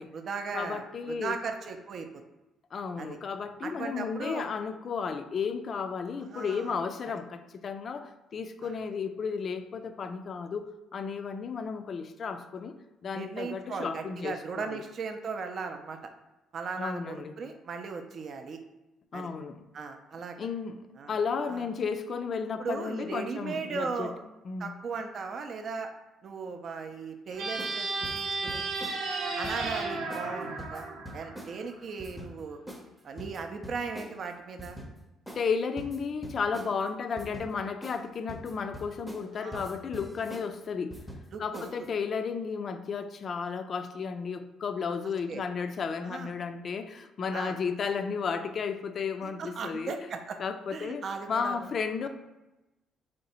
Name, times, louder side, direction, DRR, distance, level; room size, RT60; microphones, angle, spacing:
voice 1, 0.0-2.1 3.0-3.2 3.6-4.5 6.2-6.8 8.6-8.7 13.1-16.0 16.5-18.6 19.1-19.3 19.7-20.4 21.0-21.1 21.5-21.6 22.6-24.1 24.6-25.9 26.2-28.6 29.4-30.9 31.1-32.6 33.0-34.8 39.4-39.8 41.3-41.7 45.3-45.4 46.0-46.3 47.3-47.6 49.2-50.4 50.7-51.7, right 5 dB, 50° right, 6 dB, 0.4 m, -37 dB
voice 2, 0.5-1.4 2.7-12.7 13.0-14.8 16.8-17.3 19.1-19.6 20.4-24.1 24.5-24.7 35.4-41.0 41.4-49.9 50.4-52.1, left 5 dB, 45° left, 9 dB, 0.3 m, -33 dB
sound 1, 27.3-31.8, right 3 dB, 90° right, 0.7 m, -34 dB
sound 2, 27.6-27.8 28.0-29.0 29.4-29.7 30.1-30.3 30.6-31.5 32.0-32.3 32.7-32.9 33.2-34.1 34.6-34.9 35.3-35.4 35.8-36.7 37.2-37.5 37.8-38.0 38.3-39.3 39.5-40.5 40.9-41.3 41.5-41.9, equal, ahead, 0.6 m, -43 dB
3.3 x 2.7 x 4.2 m, 1.0 s
cardioid pair, 100°, 0 cm